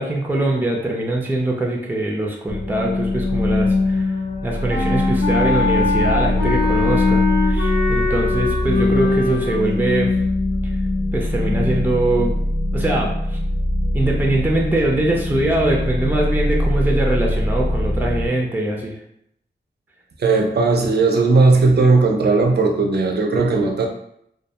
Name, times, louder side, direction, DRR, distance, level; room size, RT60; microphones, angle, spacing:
voice 1, 0.0-4.1 4.4-10.1 11.1-12.3 12.7-13.4 13.9-18.9, right 1 dB, 10° right, -1 dB, 0.5 m, -22 dB
sound 1, 2.5-18.3, left 2 dB, 40° left, 0.5 m, -21 dB
Wind instrument woodwind instrument, 4.7-9.6, left 3 dB, 65° left, 0.9 m, -23 dB
voice 2, 20.2-23.9, right 3 dB, 60° right, 2 dB, 0.5 m, -16 dB
2.3 x 2.2 x 2.8 m, 0.74 s
cardioid pair, 50°, 19 cm